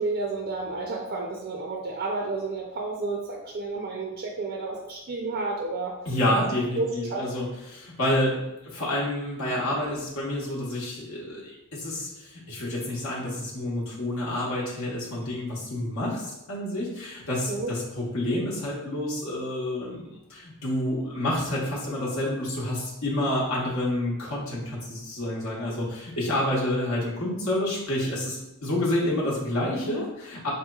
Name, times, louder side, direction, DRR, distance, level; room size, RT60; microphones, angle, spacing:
voice 1, 0.0-5.9 6.3-6.4 6.8-7.3 17.5-17.7, right 3 dB, 45° right, -1 dB, 0.4 m, -31 dB
voice 2, 6.1-30.5, left 1 dB, 65° left, -5 dB, 0.9 m, -29 dB
3.9 x 3.0 x 2.3 m, 0.92 s
head